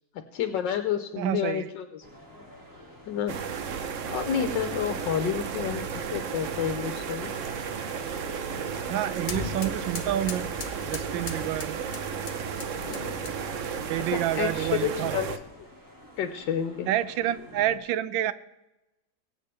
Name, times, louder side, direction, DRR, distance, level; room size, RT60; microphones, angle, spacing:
voice 1, 0.3-2.0 3.1-3.3 4.1-7.3 12.8-13.2 13.5-13.6 14.1-15.7 16.2-16.9, left 9 dB, 75° left, 7 dB, 1.5 m, -30 dB
voice 2, 1.2-1.7 8.9-10.4 10.8-11.7 13.8-15.2 16.9-18.3, right 12 dB, 85° right, 15 dB, 1.4 m, -28 dB
sound 1, 2.0-17.8, left 1 dB, 10° right, 2.0 m, -50 dB
sound 2, 3.3-15.4, right 6 dB, 55° right, 0.9 m, -34 dB
sound 3, 7.0-13.7, left 4 dB, 35° left, 0.9 m, -41 dB
23.0 x 8.5 x 3.4 m, 1.0 s
omnidirectional pair, 2.0 m